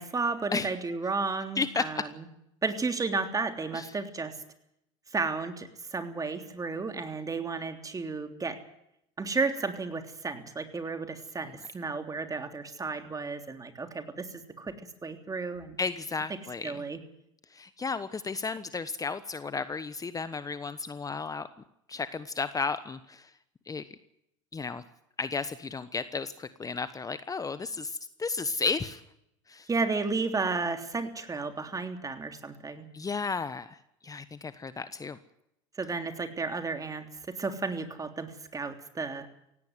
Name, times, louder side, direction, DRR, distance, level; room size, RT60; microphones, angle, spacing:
voice 1, 0.0-2.1 2.6-4.4 5.1-8.6 9.2-15.8 16.6-17.0 29.7-32.9 35.8-39.3, right 4 dB, 20° right, 7 dB, 3.3 m, -33 dB
voice 2, 1.6-2.0 3.7-3.9 11.4-11.5 15.8-16.8 17.5-21.5 21.9-23.3 23.7-23.8 24.5-24.8 25.2-29.0 29.5-29.7 32.9-35.2, left 4 dB, 20° left, 13 dB, 1.2 m, -33 dB
17.5 x 17.0 x 9.5 m, 0.79 s
hypercardioid pair, 85°, 17 cm